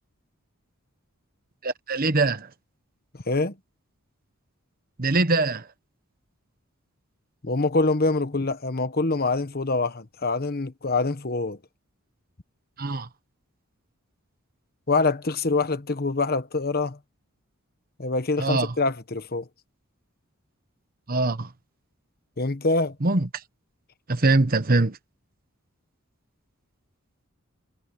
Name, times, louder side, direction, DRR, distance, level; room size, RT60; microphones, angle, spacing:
voice 1, 1.6-2.5 5.0-5.7 12.8-13.1 18.4-18.7 21.1-21.5 23.0-23.3 24.1-25.0, right 2 dB, 45° right, 1.1 m, -22 dB
voice 2, 7.4-11.6 14.9-17.0 18.0-19.5 22.4-22.9, left 3 dB, 45° left, 1.2 m, -25 dB
head